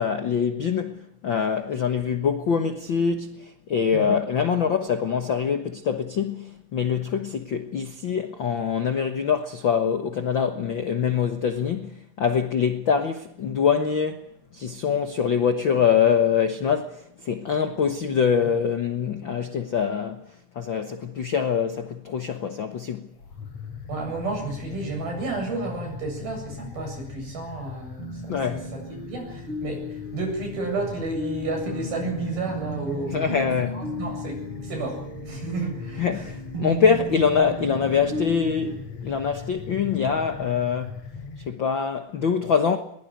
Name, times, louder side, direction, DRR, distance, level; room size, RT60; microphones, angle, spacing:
voice 1, 0.0-14.2 14.5-20.2 20.5-23.1 28.3-28.7 33.1-33.8 36.0-41.0 41.5-42.8, left 6 dB, 75° left, 1.1 m, -24 dB
sound 1, 23.1-41.5, left 5 dB, 50° left, 4.1 m, -40 dB
voice 2, 23.9-33.4 33.7-34.4 34.6-36.3, right 3 dB, 85° right, 9.6 m, -32 dB
sound 2, 28.0-38.8, left 1 dB, 35° right, 4.6 m, -35 dB
22.0 x 20.5 x 9.2 m
omnidirectional pair, 4.1 m